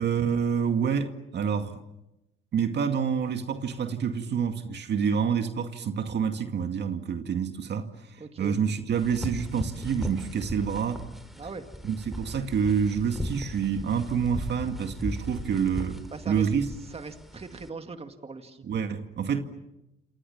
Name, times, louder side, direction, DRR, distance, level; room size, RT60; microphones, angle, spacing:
voice 1, 0.0-1.8 2.5-11.0 11.8-16.7 18.6-19.5, right 7 dB, 60° right, 2.2 m, -28 dB
voice 2, 8.2-8.6 11.4-11.7 16.1-16.5 16.9-18.7, right 4 dB, 30° right, 2.2 m, -40 dB
sound 1, 8.9-17.7, equal, ahead, 3.6 m, -37 dB
28.5 x 28.0 x 7.2 m
cardioid pair, 90°, 20 cm